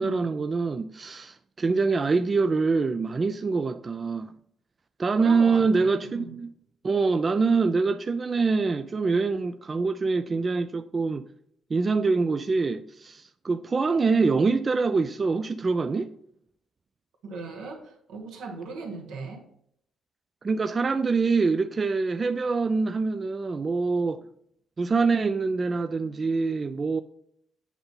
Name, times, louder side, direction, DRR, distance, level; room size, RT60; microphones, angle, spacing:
voice 1, 0.0-4.3 5.0-6.5 6.8-11.3 11.7-16.1 20.4-24.2 24.8-27.0, right 4 dB, 35° right, 0.3 m, -25 dB
voice 2, 5.2-6.3 17.2-19.4, right 3 dB, 85° right, 1.4 m, -38 dB
8.0 x 2.8 x 5.4 m
cardioid pair, 90°, 0 cm